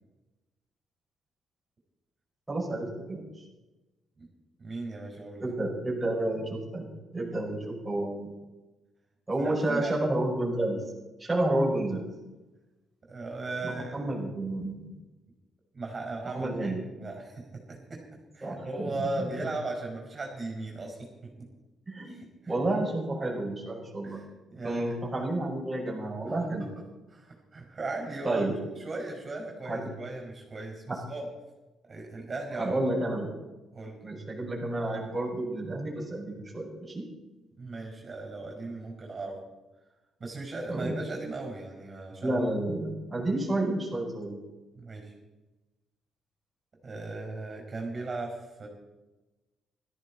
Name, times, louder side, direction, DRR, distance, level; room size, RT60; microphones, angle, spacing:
voice 1, 2.5-3.3 5.4-6.9 7.1-8.3 9.3-10.8 11.2-12.1 13.6-14.9 16.2-16.9 18.4-18.9 19.2-19.5 21.9-24.2 24.6-26.6 28.2-28.6 29.6-29.9 30.9-31.0 32.6-33.3 34.0-37.0 40.7-41.0 42.2-44.4, right 1 dB, 15° right, -4 dB, 5.6 m, -30 dB
voice 2, 4.6-5.5 9.4-10.0 13.1-14.1 15.7-16.7 17.0-18.0 18.3-21.5 22.1-22.5 24.0-24.3 24.5-24.9 26.6-26.7 27.1-28.5 28.8-31.3 31.8-32.8 33.7-34.0 37.6-39.4 40.2-42.4 44.8-45.1 46.8-48.7, right 2 dB, 35° right, 1 dB, 5.1 m, -37 dB
17.0 x 14.0 x 4.3 m, 1.1 s
cardioid pair, 90°, 0 cm